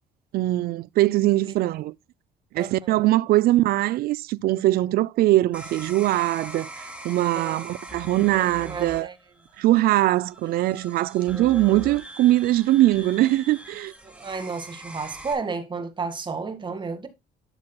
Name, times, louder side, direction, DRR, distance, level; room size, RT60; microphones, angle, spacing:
voice 1, 0.3-1.9 2.5-6.7 7.0-9.1 9.6-13.9, right 16 dB, 65° right, 0.4 m, -21 dB
voice 2, 2.6-3.1 7.3-7.7 8.4-9.1 10.4-10.5 14.0-17.1, right 4 dB, 30° right, 1.9 m, -32 dB
sound 1, 5.5-15.3, right 1 dB, 5° right, 3.0 m, -42 dB
12.5 x 7.2 x 2.3 m
cardioid pair, 110°, 17 cm